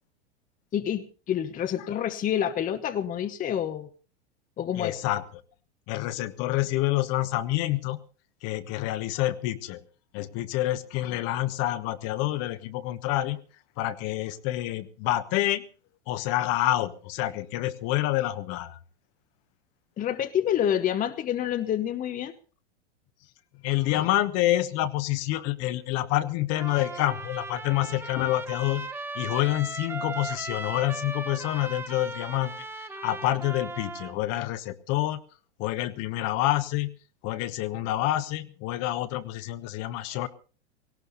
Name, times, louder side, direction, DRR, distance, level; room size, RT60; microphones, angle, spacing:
voice 1, 0.7-3.9 4.6-5.0 20.0-22.3, left 10 dB, 25° left, 10 dB, 1.0 m, -28 dB
voice 2, 4.7-5.2 5.9-8.0 8.4-9.8 10.1-13.4 13.8-15.6 16.1-18.8 23.6-28.9 29.1-35.2 35.6-36.9 37.2-40.3, left 15 dB, 45° left, 12 dB, 1.2 m, -27 dB
Trumpet, 26.5-34.1, right 2 dB, 5° right, 1.3 m, -38 dB
18.0 x 16.5 x 4.1 m, 0.37 s
hypercardioid pair, 115°, 35 cm